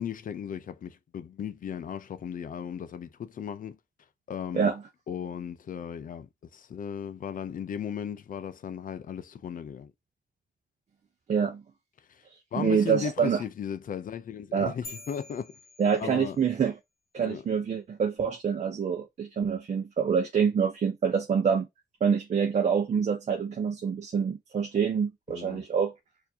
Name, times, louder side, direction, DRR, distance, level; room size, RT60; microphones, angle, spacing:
voice 1, 0.0-3.8 4.3-4.7 5.1-9.9 12.1-12.2 12.5-15.6 16.0-16.4 17.2-17.4 25.3-25.6, left 8 dB, 50° left, 0.5 m, -36 dB
voice 2, 11.3-11.6 12.5-13.4 14.5-14.7 15.8-16.7 17.1-21.7 22.0-25.9, right 7 dB, 40° right, 0.6 m, -26 dB
sound 1, 14.8-16.6, left 2 dB, 30° left, 1.2 m, -47 dB
4.4 x 2.6 x 2.8 m
wide cardioid pair, 160°, 18 cm